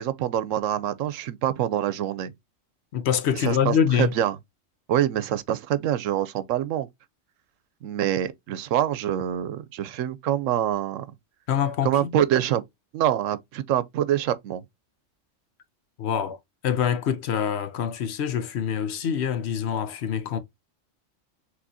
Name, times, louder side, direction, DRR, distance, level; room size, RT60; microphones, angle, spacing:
voice 1, 0.0-2.3 3.3-4.4 4.9-6.9 7.8-11.1 11.8-12.6 12.9-14.6, right 11 dB, 80° right, 1.0 m, -25 dB
voice 2, 2.9-4.1 11.5-12.1 16.0-16.4 16.6-20.4, left 8 dB, 65° left, 0.9 m, -25 dB
6.0 x 3.1 x 2.6 m
omnidirectional pair, 1.3 m